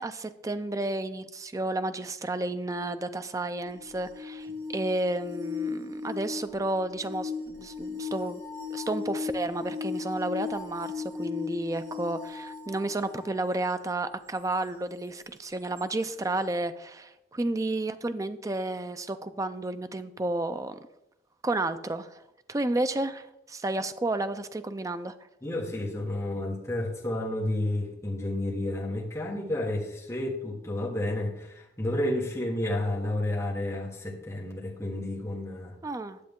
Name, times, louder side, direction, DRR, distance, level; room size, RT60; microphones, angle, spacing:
voice 1, 0.0-8.4 8.7-20.9 21.4-22.2 22.5-25.1 35.8-36.2, right 2 dB, 15° right, 10 dB, 0.4 m, -31 dB
sound 1, 3.7-13.5 15.8-15.9, left 5 dB, 75° right, 1.3 m, -37 dB
voice 2, 25.4-35.8, left 1 dB, 15° left, -4 dB, 1.4 m, -31 dB
10.0 x 7.4 x 3.6 m, 0.87 s
head